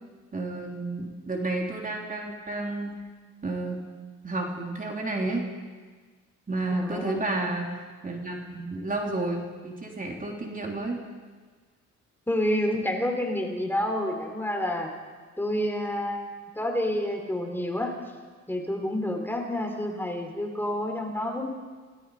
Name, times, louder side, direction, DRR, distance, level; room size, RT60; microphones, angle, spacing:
voice 1, 0.3-2.9 3.4-3.8 4.2-5.4 6.5-11.0, right 2 dB, 25° right, 0 dB, 3.4 m, -31 dB
voice 2, 6.7-7.2 12.3-14.9 15.4-18.0 18.5-21.5, left 1 dB, 5° left, 2 dB, 3.8 m, -29 dB
28.5 x 18.5 x 5.0 m, 1.5 s
cardioid pair, 90°, 30 cm